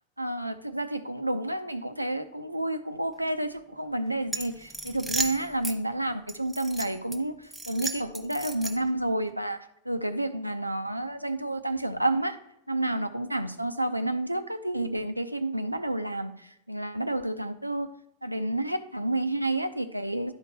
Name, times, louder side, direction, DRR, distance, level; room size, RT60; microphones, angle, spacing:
voice 1, 0.2-12.4 12.7-17.9 18.2-20.3, right 1 dB, 85° right, 10 dB, 0.5 m, -30 dB
sound 1, 4.3-5.8 6.3-7.2 7.5-9.0, right 2 dB, ahead, 0.8 m, -34 dB
12.0 x 4.5 x 2.9 m, 0.81 s
figure-of-eight pair, 90°, 0 cm